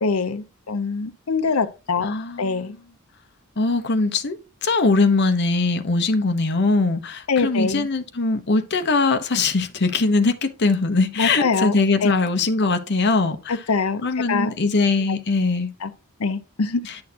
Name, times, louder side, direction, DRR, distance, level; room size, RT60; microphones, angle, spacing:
voice 1, 0.0-2.8 7.3-7.9 11.2-11.8 12.0-12.1 13.5-14.0 14.3-14.5 15.1-15.2 15.8-15.9 16.2-16.8, left 4 dB, 75° left, 0.7 m, -24 dB
voice 2, 2.0-2.7 3.6-13.6 14.0-15.7 16.9-17.0, left 3 dB, 55° left, 0.9 m, -21 dB
10.5 x 6.4 x 2.8 m
head